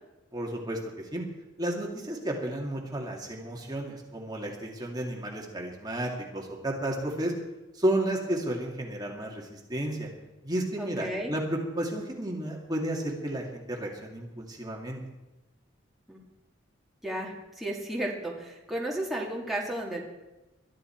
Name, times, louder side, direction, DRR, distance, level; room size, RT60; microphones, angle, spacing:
voice 1, 0.3-1.2 1.6-7.3 7.7-10.1 10.4-15.0, right 1 dB, 20° right, -1 dB, 2.2 m, -32 dB
voice 2, 10.8-11.3 16.1-16.2 17.0-20.0, right 1 dB, ahead, -3 dB, 2.3 m, -33 dB
21.5 x 12.5 x 4.5 m, 1.0 s
head